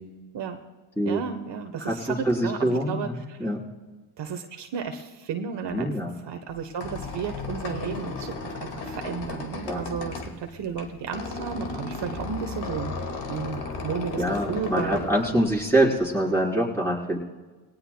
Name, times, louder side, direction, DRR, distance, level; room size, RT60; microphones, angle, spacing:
voice 1, 1.0-3.5 4.2-5.9 6.2-12.9 13.3-15.1, right 6 dB, 60° right, 5 dB, 1.2 m, -33 dB
voice 2, 1.8-3.6 5.7-6.2 9.7-9.8 14.2-17.2, right 1 dB, 5° left, -3 dB, 4.1 m, -25 dB
Squeak, 6.5-16.1, left 3 dB, 60° left, 2.1 m, -35 dB
19.5 x 17.5 x 2.3 m, 1.3 s
supercardioid pair, 70°, 46 cm